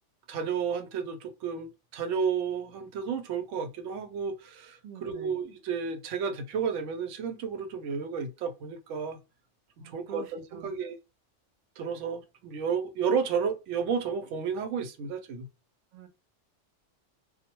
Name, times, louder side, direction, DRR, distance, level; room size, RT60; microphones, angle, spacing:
voice 1, 0.3-9.2 9.8-11.0 11.8-15.5, right 6 dB, 80° right, 0.9 m, -32 dB
voice 2, 4.8-5.4 9.8-10.8 15.9-16.1, right 7 dB, 60° right, 0.5 m, -45 dB
2.2 x 2.1 x 2.9 m
omnidirectional pair, 1.3 m